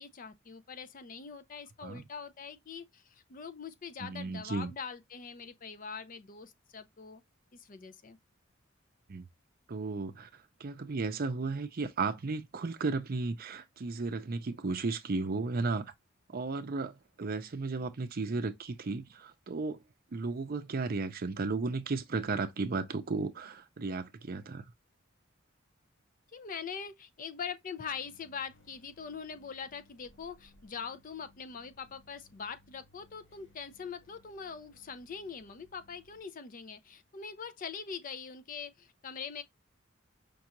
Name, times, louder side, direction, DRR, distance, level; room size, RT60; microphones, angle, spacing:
voice 1, 0.0-7.2 7.5-8.2 26.3-39.4, left 6 dB, 40° left, 0.5 m, -43 dB
voice 2, 4.0-4.7 9.1-9.2 9.7-15.9 16.3-19.8 20.1-24.7, right 3 dB, 50° right, 0.5 m, -34 dB
sound 1, 27.8-36.2, left 1 dB, 75° left, 1.7 m, -64 dB
5.2 x 2.4 x 2.9 m
head